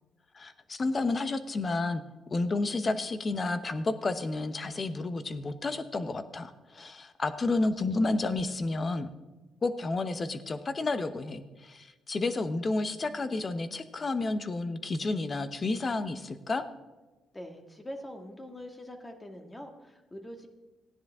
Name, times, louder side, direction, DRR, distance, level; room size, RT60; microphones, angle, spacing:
voice 1, 0.3-2.0 2.3-9.1 9.6-16.6, left 3 dB, 35° left, 11 dB, 0.9 m, -31 dB
voice 2, 17.3-20.5, equal, 15° left, 4 dB, 1.8 m, -44 dB
15.5 x 10.0 x 3.6 m, 1.1 s
cardioid pair, 90°, 0 cm